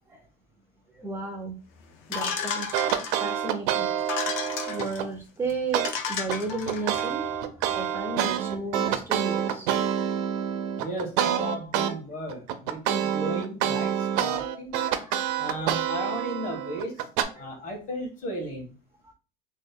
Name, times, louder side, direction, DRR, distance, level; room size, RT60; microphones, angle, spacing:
voice 1, 0.9-1.6 2.1-3.9 4.2-9.9 10.4-10.5 14.8-15.7 17.4-17.5 19.0-19.1, right 3 dB, 10° right, 0.4 m, -35 dB
sound 1, 2.1-3.4 4.0-5.0 5.5-5.6 5.8-7.0, left 6 dB, 65° left, 0.7 m, -32 dB
sound 2, 2.7-5.1 5.7-5.9 6.3-11.9 12.3-17.2, right 10 dB, 85° right, 0.5 m, -27 dB
voice 2, 10.8-14.8 15.4-17.0 17.3-18.7, equal, 40° left, 1.3 m, -35 dB
3.0 x 2.1 x 3.7 m
cardioid pair, 150°, 21 cm